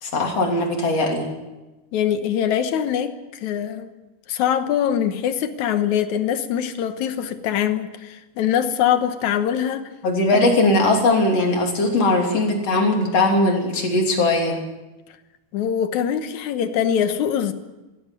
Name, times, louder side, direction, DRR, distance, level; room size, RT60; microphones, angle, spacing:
voice 1, 0.0-1.3 10.0-14.6, left 2 dB, 40° left, 1 dB, 3.8 m, -19 dB
voice 2, 1.9-3.1 3.4-3.9 4.3-9.8 15.5-17.5, left 9 dB, 65° left, 9 dB, 2.0 m, -23 dB
17.0 x 16.5 x 9.7 m, 1.1 s
omnidirectional pair, 4.5 m